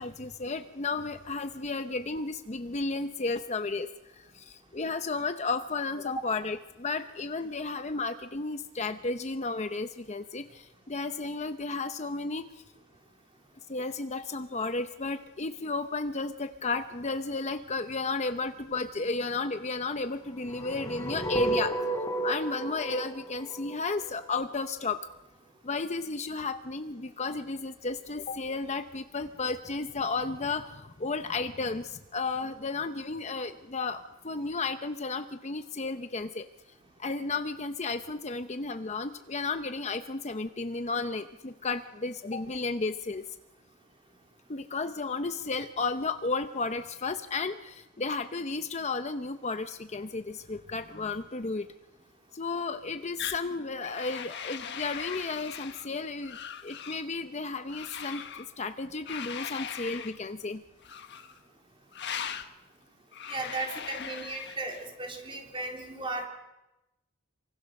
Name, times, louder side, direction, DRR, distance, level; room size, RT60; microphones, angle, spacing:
voice 1, 0.0-12.5 13.7-21.7 22.2-25.1 25.6-36.5 37.0-43.2 44.5-51.7 52.3-56.4 56.6-60.6 64.0-64.1, left 3 dB, 30° left, 9 dB, 0.7 m, -33 dB
sound 1, 20.4-24.4, right 2 dB, 15° left, 4.4 m, -33 dB
sound 2, 53.2-53.4 53.8-55.9 56.2-57.0 57.7-58.5 59.1-60.2 60.8-61.4 61.9-62.5 63.1-64.9, left 8 dB, 55° left, 1.5 m, -40 dB
voice 2, 63.3-66.3, right 2 dB, 25° right, 2 dB, 3.7 m, -36 dB
27.0 x 24.5 x 6.5 m, 0.99 s
head